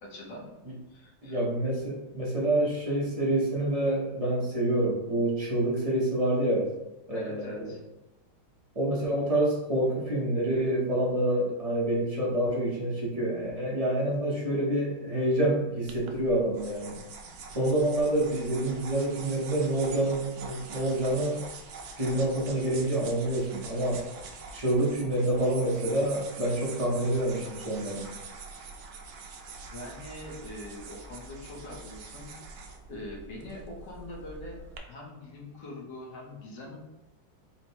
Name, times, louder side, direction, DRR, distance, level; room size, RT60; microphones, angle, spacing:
voice 1, 0.0-0.5 0.9-1.4 7.1-7.8 17.5-17.6 29.7-32.3 32.9-34.6 34.9-36.8, left 1 dB, 70° left, -2 dB, 1.6 m, -43 dB
voice 2, 1.2-6.7 7.1-7.7 8.7-17.0 17.5-21.4 22.0-24.0 24.5-28.1, right 1 dB, 30° right, -5 dB, 0.7 m, -27 dB
sound 1, 15.9-34.8, right 4 dB, 70° right, 0.9 m, -45 dB
4.4 x 2.2 x 4.3 m, 0.96 s
omnidirectional pair, 2.0 m